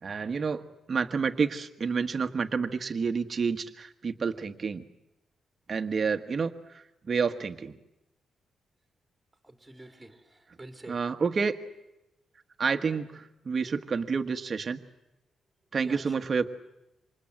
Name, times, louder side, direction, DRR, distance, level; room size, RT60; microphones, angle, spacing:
voice 1, 0.0-4.8 5.7-7.8 10.9-11.6 12.6-14.8 15.7-16.5, right 5 dB, 30° right, 7 dB, 1.4 m, -29 dB
voice 2, 9.4-11.0 15.8-16.2, right 2 dB, 5° right, 6 dB, 2.4 m, -47 dB
28.5 x 26.5 x 7.8 m, 0.93 s
wide cardioid pair, 175°, 0 cm